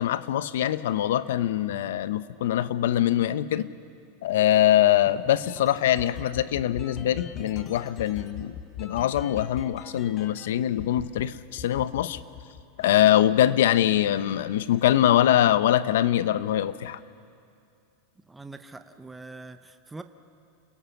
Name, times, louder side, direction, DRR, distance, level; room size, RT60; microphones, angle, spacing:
voice 1, 0.0-3.7 4.2-12.2 12.8-17.0, left 12 dB, 80° left, 14 dB, 0.8 m, -23 dB
sound 1, 5.1-10.5 10.8-11.2 11.6-13.0, left 6 dB, 25° left, 1.2 m, -41 dB
voice 2, 18.3-20.0, right 3 dB, 5° right, 8 dB, 0.6 m, -43 dB
29.0 x 17.5 x 7.1 m, 2.4 s
supercardioid pair, 155°, 0 cm